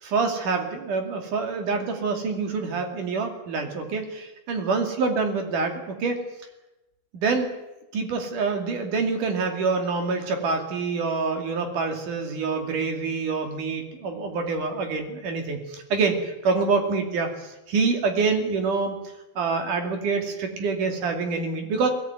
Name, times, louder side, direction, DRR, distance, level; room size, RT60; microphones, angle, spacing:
voice 1, 0.0-6.2 7.1-7.5 7.9-16.2 16.4-18.9 19.4-21.9, right 4 dB, 50° right, 4 dB, 3.9 m, -26 dB
20.5 x 18.0 x 9.3 m, 0.97 s
omnidirectional pair, 4.9 m